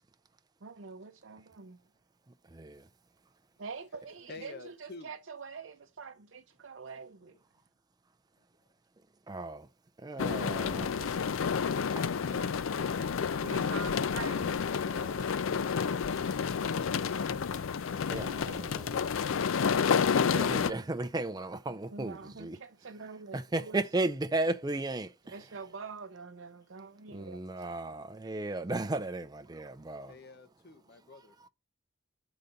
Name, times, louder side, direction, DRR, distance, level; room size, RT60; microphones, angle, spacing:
voice 1, 0.6-1.9 3.6-7.4 12.3-12.6 13.4-16.1 16.7-17.0 18.1-19.5 21.7-23.8 25.2-27.7, right 4 dB, 65° right, 0.6 m, -46 dB
voice 2, 4.3-5.1 28.4-28.5 30.1-31.5, left 3 dB, 55° left, 0.9 m, -50 dB
voice 3, 9.3-9.6 10.0-10.9 14.4-14.5 18.1-18.7 20.3-22.6 23.3-25.1 27.1-30.1, right 2 dB, 20° right, 0.5 m, -34 dB
sound 1, 10.2-20.7, left 6 dB, 75° left, 0.5 m, -30 dB
8.1 x 4.0 x 5.1 m
head